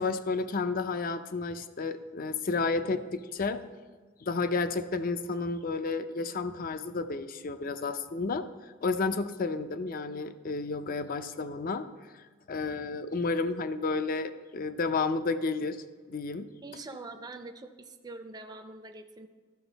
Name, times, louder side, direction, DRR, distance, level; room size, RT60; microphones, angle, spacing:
voice 1, 0.0-3.6 4.2-8.5 8.8-11.9 12.5-16.5, left 3 dB, 45° left, 11 dB, 0.5 m, -31 dB
voice 2, 16.6-19.3, right 2 dB, 20° right, 5 dB, 0.5 m, -44 dB
13.0 x 6.1 x 4.0 m, 1.5 s
head